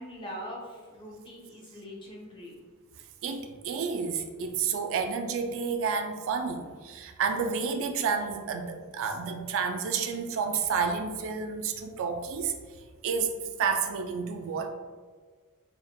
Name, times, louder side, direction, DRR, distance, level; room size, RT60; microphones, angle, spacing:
voice 1, 0.0-2.6, equal, 25° left, -2 dB, 0.7 m, -42 dB
voice 2, 3.2-12.5 13.0-13.3 13.6-14.7, right 5 dB, 65° right, 6 dB, 0.3 m, -30 dB
3.7 x 3.5 x 2.2 m, 1.5 s
head